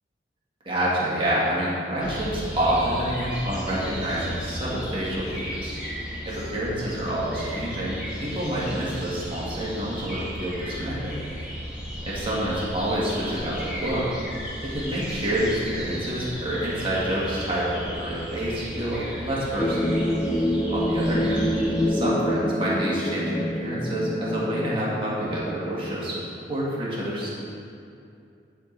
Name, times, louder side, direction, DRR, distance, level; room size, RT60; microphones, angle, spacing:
voice 1, 0.6-5.7 6.2-11.1 12.0-14.1 14.6-20.0 20.7-21.5 21.9-26.2 26.5-27.3, right 1 dB, 30° right, -7 dB, 1.7 m, -28 dB
sound 1, 2.0-21.9, equal, 5° right, 1.2 m, -35 dB
sound 2, 19.6-25.8, equal, 20° left, 0.4 m, -26 dB
10.5 x 3.8 x 3.9 m, 2.5 s
head